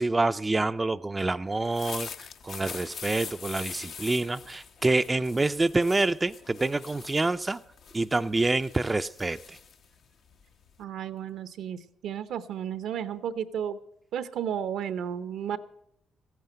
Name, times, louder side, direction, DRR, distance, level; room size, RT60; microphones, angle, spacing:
voice 1, 0.0-7.6 7.9-9.6, right 2 dB, 20° right, 10 dB, 0.4 m, -27 dB
sound 1, 1.5-10.8, left 6 dB, 65° left, 0.9 m, -43 dB
voice 2, 10.8-13.8 14.1-15.6, right 8 dB, 75° right, 13 dB, 0.7 m, -33 dB
14.5 x 9.3 x 7.9 m, 0.78 s
supercardioid pair, 65°, 0 cm